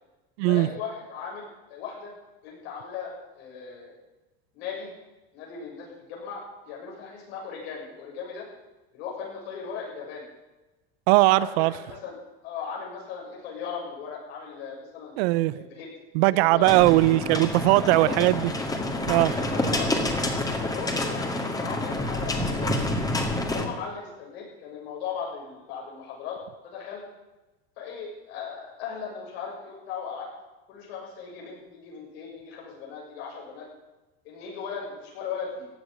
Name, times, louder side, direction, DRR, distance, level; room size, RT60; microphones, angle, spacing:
voice 1, 0.5-2.1 2.4-4.0 4.5-4.9 5.3-8.5 8.9-10.3 11.3-12.1 12.4-15.1 15.5-15.9 16.3-16.8 17.7-18.3 19.4-20.0 20.7-22.8 23.5-26.4 26.6-27.0 27.8-30.3 30.7-33.7 34.2-35.7, left 6 dB, 85° left, -2 dB, 7.2 m, -37 dB
voice 2, 11.1-11.7 15.2-15.6 16.1-18.5 19.1-19.3, right 19 dB, 80° right, 19 dB, 0.8 m, -20 dB
sound 1, 16.7-23.7, left 1 dB, 10° left, 2.1 m, -28 dB
15.5 x 8.2 x 9.9 m, 1.1 s
supercardioid pair, 135°, 30 cm